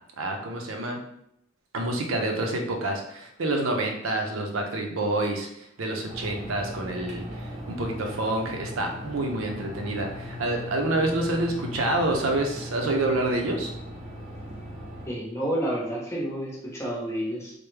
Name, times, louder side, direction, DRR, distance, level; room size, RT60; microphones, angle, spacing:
voice 1, 0.2-1.0 1.7-13.7, right 2 dB, 85° right, 2 dB, 0.6 m, -28 dB
sound 1, 6.1-15.1, left 1 dB, 35° right, 0.8 m, -38 dB
voice 2, 15.1-17.5, right 1 dB, 15° left, -4 dB, 0.7 m, -30 dB
3.3 x 2.1 x 3.2 m, 0.76 s
head